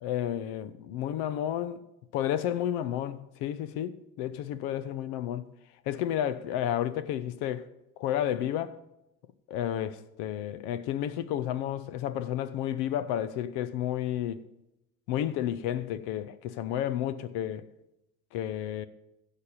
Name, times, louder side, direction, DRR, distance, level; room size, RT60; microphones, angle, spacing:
voice 1, 0.0-1.8 2.1-5.5 5.9-7.7 8.0-8.8 9.5-14.4 15.1-17.7 18.3-18.9, left 11 dB, 70° left, 0.8 m, -31 dB
15.5 x 5.3 x 5.6 m
hypercardioid pair, 60°, 41 cm